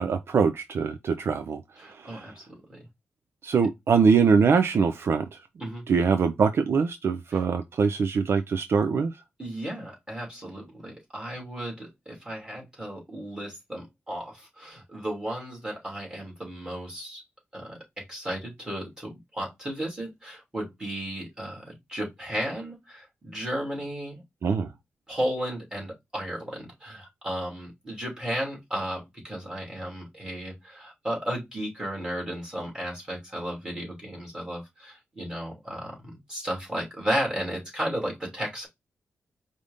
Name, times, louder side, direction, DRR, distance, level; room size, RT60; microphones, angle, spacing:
voice 1, 0.0-2.3 3.4-5.4 5.9-9.1 24.4-24.7, right 5 dB, 60° right, 0.4 m, -23 dB
voice 2, 1.8-2.8 5.6-5.9 7.3-7.4 9.4-17.2 17.5-24.2 25.1-38.7, equal, 15° right, 2.8 m, -34 dB
5.0 x 2.6 x 3.4 m
wide cardioid pair, 110°, 5 cm